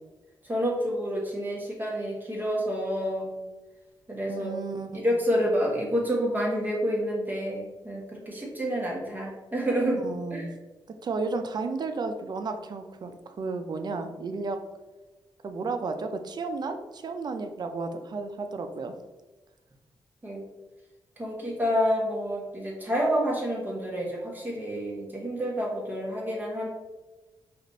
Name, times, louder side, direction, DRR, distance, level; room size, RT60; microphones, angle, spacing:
voice 1, 0.5-3.4 4.1-4.5 4.9-10.0 10.3-10.5 20.2-20.4 21.2-26.7, equal, 20° right, -2 dB, 1.2 m, -28 dB
voice 2, 4.3-4.9 10.0-10.5 11.0-14.6 15.4-18.9, right 4 dB, 50° right, 7 dB, 0.5 m, -33 dB
5.0 x 2.5 x 4.0 m, 1.1 s
cardioid pair, 100°, 9 cm